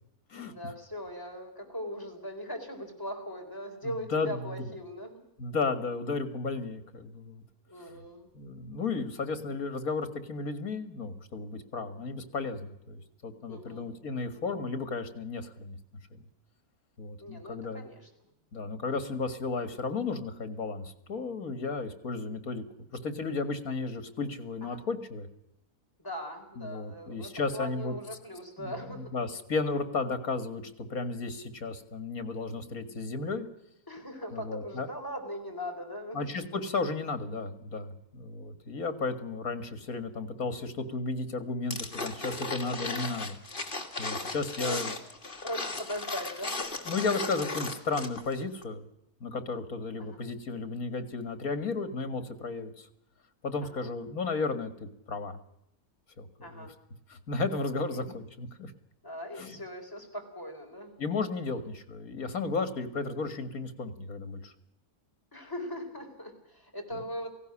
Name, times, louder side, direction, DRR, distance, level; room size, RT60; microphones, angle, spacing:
voice 1, 0.3-5.2 7.7-8.3 13.5-13.9 17.2-18.1 24.6-24.8 26.0-29.2 33.9-36.3 44.1-44.8 45.4-46.6 50.0-50.2 53.6-53.9 56.4-56.7 57.9-58.0 59.0-60.9 65.3-67.3, equal, 15° left, 1 dB, 4.3 m, -40 dB
voice 2, 3.8-4.6 5.4-7.4 8.3-15.8 16.1-16.2 17.0-17.9 18.5-22.6 23.0-25.3 26.6-28.0 28.6-30.6 30.9-33.5 34.3-34.9 36.1-43.4 43.6-43.7 44.0-44.9 46.9-48.8 49.2-52.9 53.4-55.4 56.2-56.7 57.1-58.7 59.4-59.6 61.0-64.5, left 3 dB, 70° left, 11 dB, 2.3 m, -34 dB
sound 1, 41.7-48.3 48.6-48.7, left 3 dB, 35° left, 2.1 m, -36 dB
18.0 x 16.5 x 9.9 m, 0.79 s
omnidirectional pair, 1.6 m